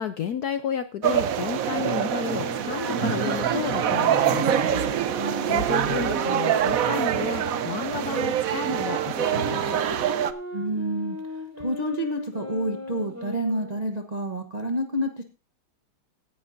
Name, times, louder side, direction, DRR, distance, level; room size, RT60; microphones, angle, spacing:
voice 1, 0.0-4.6 5.4-9.8, left 8 dB, 70° left, 10 dB, 0.9 m, -32 dB
sound 1, 1.0-10.3, right 10 dB, 75° right, 0.7 m, -25 dB
sound 2, 1.8-7.7 8.4-13.8, right 1 dB, 5° right, 4.0 m, -35 dB
voice 2, 5.2-5.6 10.5-11.2 11.6-15.2, right 1 dB, 40° right, 5 dB, 0.5 m, -29 dB
17.0 x 11.0 x 2.6 m, 0.32 s
omnidirectional pair, 2.4 m